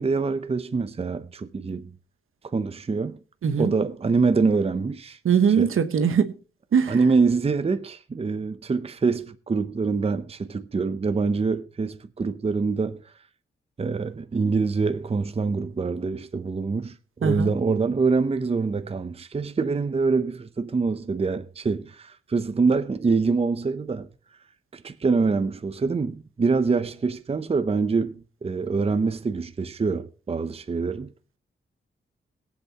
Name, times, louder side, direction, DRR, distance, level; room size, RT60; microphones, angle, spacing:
voice 1, 0.0-1.9 2.4-3.2 3.6-5.2 5.6-5.7 6.9-13.0 13.8-16.9 17.2-24.1 24.7-31.1, right 4 dB, 30° right, 0.6 m, -25 dB
voice 2, 3.4-3.7 5.2-6.3 6.7-7.0 17.2-17.5, right 7 dB, 80° right, 1.2 m, -21 dB
21.5 x 7.9 x 2.9 m
wide cardioid pair, 105°, 21 cm